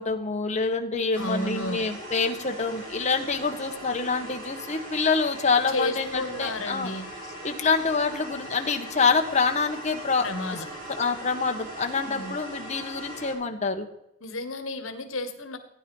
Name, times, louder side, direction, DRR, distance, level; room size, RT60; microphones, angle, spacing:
voice 1, 0.0-6.9 7.4-10.3 11.0-13.9, left 4 dB, 35° left, 4 dB, 1.4 m, -26 dB
sound 1, 1.1-13.3, right 1 dB, 45° right, 6.4 m, -40 dB
voice 2, 1.2-1.8 5.7-7.1 10.2-10.7 12.0-12.3 14.2-15.6, left 2 dB, 80° left, 7 dB, 1.6 m, -32 dB
15.5 x 10.0 x 5.5 m, 0.82 s
head